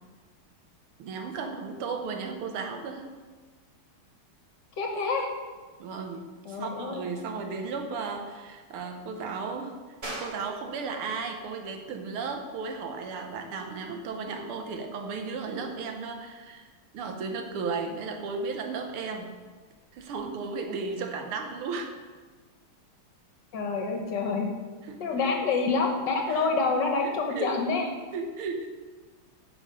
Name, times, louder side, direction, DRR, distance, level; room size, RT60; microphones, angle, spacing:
voice 1, 1.0-3.1 5.8-16.7 16.9-19.3 19.9-21.9 24.8-25.4 26.3-26.5 27.0-28.7, right 4 dB, 90° right, 5 dB, 1.9 m, -35 dB
voice 2, 4.8-5.3 6.5-7.0 23.5-24.5 25.0-27.9, left 4 dB, 60° left, 2 dB, 1.7 m, -27 dB
sound 1, 10.0-20.3, right 1 dB, 30° right, 1.9 m, -48 dB
10.0 x 5.4 x 5.5 m, 1.4 s
omnidirectional pair, 2.3 m